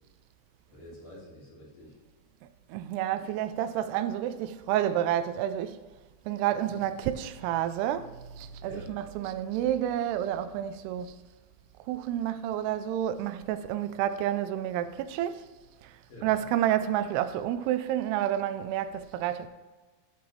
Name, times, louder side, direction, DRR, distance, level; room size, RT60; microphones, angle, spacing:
voice 1, 0.7-2.0 6.6-6.8 8.6-9.0 16.1-16.4, left 1 dB, 55° left, 5.0 m, -47 dB
voice 2, 2.7-5.8 6.3-11.2 11.9-15.4 15.8-19.5, right 11 dB, 85° right, 2.6 m, -30 dB
12.5 x 8.2 x 3.1 m
omnidirectional pair, 4.7 m